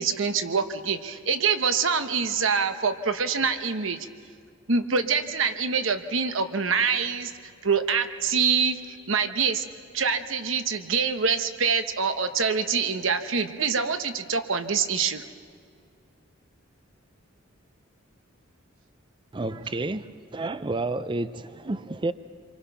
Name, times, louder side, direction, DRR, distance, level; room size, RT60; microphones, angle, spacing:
voice 1, 0.0-4.1 4.7-7.3 7.6-9.6 9.9-15.2, right 5 dB, 70° right, 9 dB, 1.1 m, -25 dB
voice 2, 19.3-22.1, right 2 dB, 25° right, 13 dB, 0.5 m, -30 dB
28.5 x 24.0 x 5.7 m, 2.2 s
head